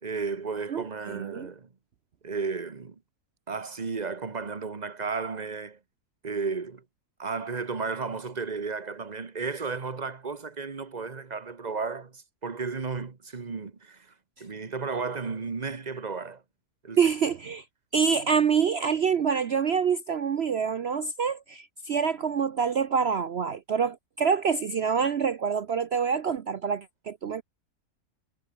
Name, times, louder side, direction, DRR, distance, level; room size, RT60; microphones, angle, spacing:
voice 1, 0.0-1.7 2.2-2.9 3.5-5.8 6.2-6.8 7.2-14.1 14.4-16.4 16.8-17.0, right 4 dB, 30° right, 1.3 m, -33 dB
voice 2, 0.7-1.5 17.0-17.6 17.9-27.4, right 6 dB, 50° right, 0.9 m, -26 dB
omnidirectional pair, 1.6 m